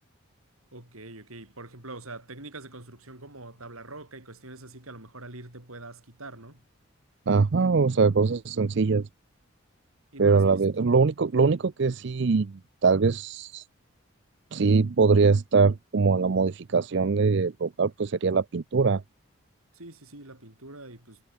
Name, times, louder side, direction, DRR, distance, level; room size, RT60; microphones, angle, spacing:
voice 1, 0.7-6.6 10.1-10.6 19.7-21.3, right 2 dB, 90° right, 6.2 m, -44 dB
voice 2, 7.3-9.1 10.2-13.6 14.5-19.0, right 4 dB, 55° right, 0.5 m, -22 dB
head